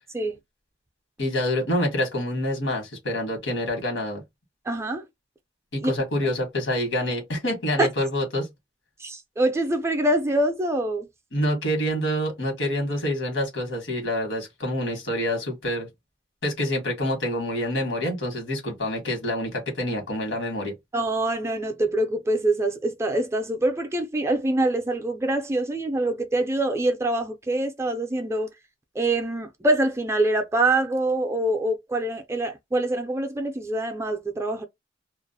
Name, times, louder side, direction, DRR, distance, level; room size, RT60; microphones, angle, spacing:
voice 1, 1.2-4.2 5.7-8.5 11.3-15.9 16.4-20.7, left 1 dB, 85° left, 1.2 m, -27 dB
voice 2, 4.7-5.0 5.8-5.9 7.8-7.9 9.0-11.1 20.9-28.5 29.0-34.6, right 1 dB, 15° right, 0.3 m, -25 dB
2.4 x 2.0 x 2.6 m
head